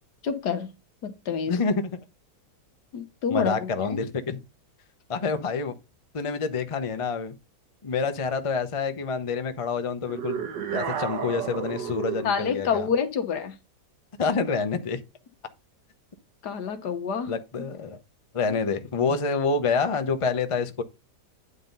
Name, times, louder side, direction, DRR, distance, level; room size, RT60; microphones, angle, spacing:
voice 1, 0.2-0.7 1.0-1.6 2.9-4.0 12.2-13.5 16.4-17.3, left 6 dB, 75° left, 1.7 m, -28 dB
voice 2, 1.5-2.0 3.3-4.4 5.1-5.7 6.1-7.4 7.8-10.4 10.7-12.9 14.2-15.0 17.3-18.0 18.3-20.8, left 4 dB, 30° left, 0.6 m, -27 dB
sound 1, 10.1-12.4, right 8 dB, 85° right, 1.7 m, -32 dB
9.6 x 3.8 x 5.4 m
omnidirectional pair, 1.8 m